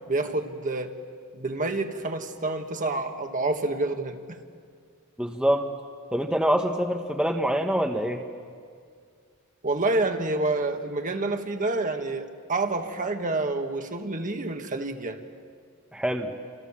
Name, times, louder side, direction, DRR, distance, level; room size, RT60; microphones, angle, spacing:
voice 1, 0.1-0.9 1.3-4.4 9.6-15.2, right 2 dB, 35° right, 5 dB, 1.8 m, -28 dB
voice 2, 5.2-5.7 6.1-8.2 15.9-16.3, equal, 5° right, 3 dB, 1.2 m, -25 dB
30.0 x 27.0 x 7.4 m, 2.1 s
head